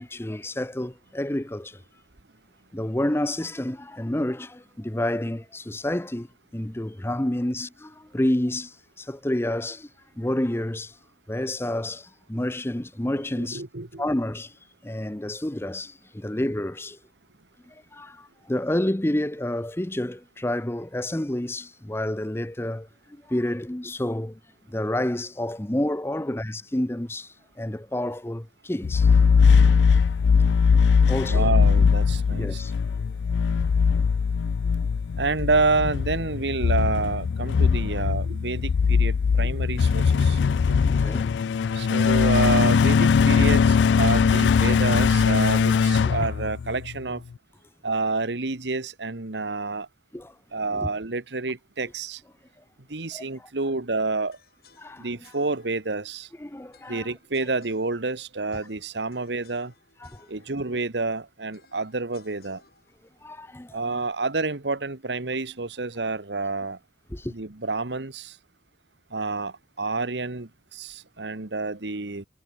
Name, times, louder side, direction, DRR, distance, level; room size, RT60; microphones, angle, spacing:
voice 1, 0.0-1.8 2.7-6.3 6.5-9.9 10.2-11.0 11.3-13.6 14.0-14.5 14.8-17.0 17.7-24.4 24.7-29.8 31.1-31.5 32.3-32.7 41.0-41.3 41.6-41.7 46.1-46.2 50.1-50.3 50.7-50.9 53.1-53.5 54.8-55.1 56.4-57.1 60.0-60.3 63.2-64.0 67.1-67.3, left 1 dB, 15° left, 0.7 m, -29 dB
voice 2, 13.4-14.0 31.3-32.6 35.2-40.4 40.7-40.8 41.7-47.2 47.8-49.9 50.5-52.2 52.9-54.4 55.0-56.3 56.9-59.7 60.3-62.6 63.7-66.8 67.3-68.3 69.1-72.2, right 3 dB, 80° right, 1.5 m, -28 dB
sound 1, 28.8-47.0, left 5 dB, 80° left, 0.4 m, -20 dB
sound 2, 54.3-64.4, left 4 dB, 55° left, 7.9 m, -61 dB
head